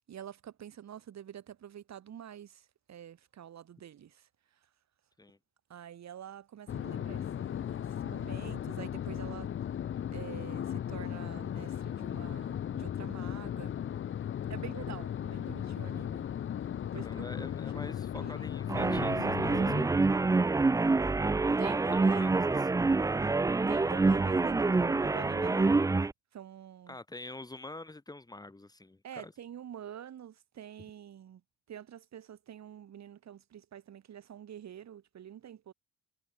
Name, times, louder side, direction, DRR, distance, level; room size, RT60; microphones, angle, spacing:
voice 1, 0.1-4.3 5.7-9.5 10.1-13.7 14.5-16.3 16.9-17.2 17.5-18.5 21.6-22.3 23.7-26.0 26.3-27.0 29.0-31.4 31.7-35.7, right 10 dB, 55° right, 6.8 m, -47 dB
sound 1, 6.7-19.9, left 9 dB, 40° left, 0.7 m, -36 dB
voice 2, 16.9-20.0 21.5-21.6 21.9-22.9 26.9-29.3, left 2 dB, 10° left, 3.2 m, -46 dB
sound 2, 18.7-26.1, right 3 dB, 10° right, 0.4 m, -27 dB
cardioid pair, 165°, 33 cm